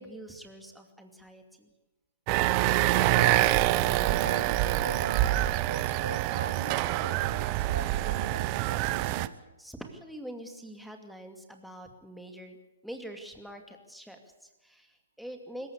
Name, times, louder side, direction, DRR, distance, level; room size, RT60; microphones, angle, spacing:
voice 1, 0.0-1.7 9.6-12.6 12.8-15.7, right 1 dB, ahead, 4 dB, 2.4 m, -45 dB
sound 1, 2.3-9.3, right 16 dB, 35° right, 0.8 m, -26 dB
voice 2, 3.0-3.7 4.0-9.3, right 4 dB, 75° right, 11 dB, 1.6 m, -40 dB
25.0 x 15.0 x 8.4 m, 1.0 s
figure-of-eight pair, 120°, 0 cm